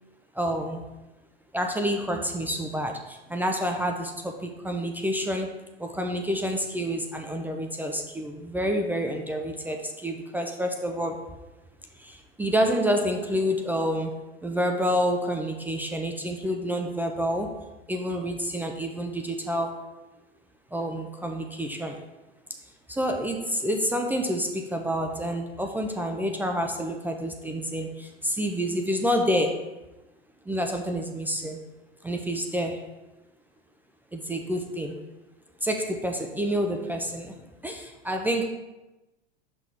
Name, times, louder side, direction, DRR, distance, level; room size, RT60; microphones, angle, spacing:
voice 1, 0.3-0.8 1.5-11.2 12.0-17.6 17.9-19.9 20.7-22.1 22.9-29.8 30.5-31.6 32.0-32.9 34.1-35.0 35.6-37.4 37.6-38.5, equal, 5° right, 3 dB, 0.4 m, -28 dB
5.7 x 3.7 x 4.6 m, 1.0 s
hypercardioid pair, 95°, 31 cm